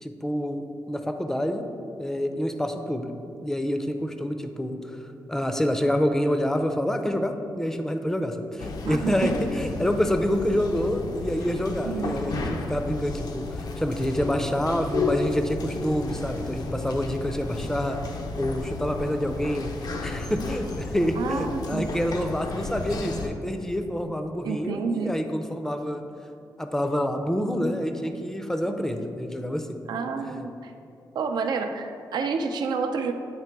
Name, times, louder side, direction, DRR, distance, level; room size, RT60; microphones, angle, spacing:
voice 1, 0.0-1.7 2.0-3.1 3.4-5.0 5.3-19.7 20.0-26.0 26.6-29.8, equal, 5° left, 6 dB, 0.5 m, -27 dB
sound 1, 8.6-23.3, left 3 dB, 65° left, 0.5 m, -33 dB
voice 2, 8.8-9.3 11.9-12.2 21.2-21.9 24.4-25.1 29.9-30.7 31.1-33.1, right 5 dB, 80° right, 6 dB, 0.5 m, -29 dB
8.7 x 2.9 x 4.6 m, 2.6 s
cardioid pair, 90°, 7 cm